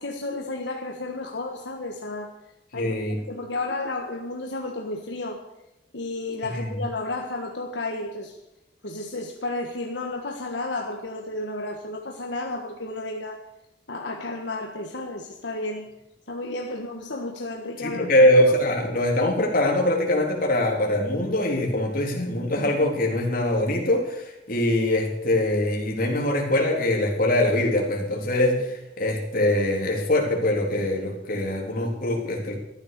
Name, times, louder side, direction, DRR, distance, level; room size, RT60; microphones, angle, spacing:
voice 1, 0.0-2.3 2.7-3.0 3.2-5.4 5.9-8.4 8.8-13.4 13.9-15.9 16.3-18.1 31.3-31.4, left 2 dB, 80° left, 1 dB, 1.6 m, -32 dB
voice 2, 2.7-3.2 6.5-6.7 17.8-32.6, left 1 dB, 50° left, 0 dB, 3.6 m, -23 dB
13.5 x 12.0 x 6.8 m, 0.89 s
head